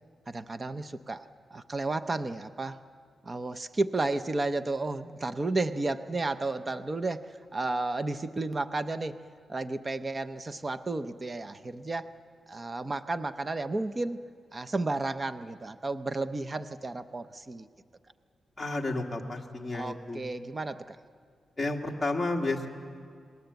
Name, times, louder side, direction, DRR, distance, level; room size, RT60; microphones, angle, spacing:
voice 1, 0.3-2.8 3.2-9.2 9.5-12.1 12.5-14.3 14.5-17.7 19.7-21.0, right 2 dB, 25° right, 11 dB, 0.6 m, -32 dB
voice 2, 18.6-20.2 21.6-22.7, left 2 dB, 10° left, -2 dB, 1.9 m, -31 dB
28.5 x 20.0 x 8.0 m, 2.1 s
wide cardioid pair, 170°, 0 cm